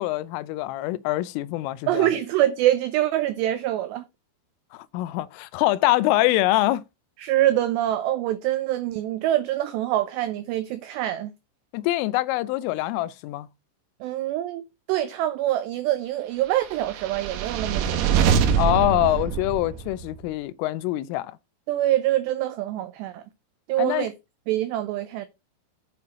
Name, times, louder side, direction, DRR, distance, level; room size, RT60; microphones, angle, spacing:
voice 1, 0.0-2.1 4.7-6.8 11.7-13.5 18.6-21.4 23.8-24.1, left 16 dB, 85° left, 3.1 m, -24 dB
voice 2, 1.9-4.0 7.2-11.3 14.0-14.6 14.9-18.1 21.7-23.2 23.7-24.1 24.5-25.3, right 13 dB, 90° right, 2.4 m, -25 dB
sound 1, 16.7-20.2, right 7 dB, 70° right, 3.4 m, -24 dB
8.9 x 5.9 x 5.4 m
omnidirectional pair, 5.8 m